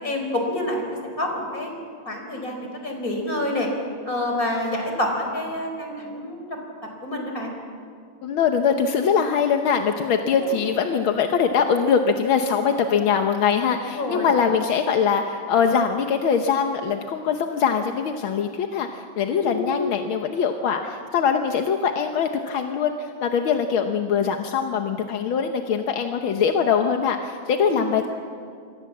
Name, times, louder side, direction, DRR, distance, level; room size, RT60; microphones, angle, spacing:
voice 1, 0.0-1.7 2.1-3.7 4.1-6.6 7.0-7.5 10.3-10.6 13.9-14.3 19.4-19.5 27.7-27.8, left 1 dB, 40° left, 2 dB, 5.2 m, -28 dB
voice 2, 8.2-28.0, left 6 dB, 80° left, 5 dB, 1.9 m, -22 dB
27.5 x 23.0 x 7.4 m, 2.3 s
omnidirectional pair, 2.2 m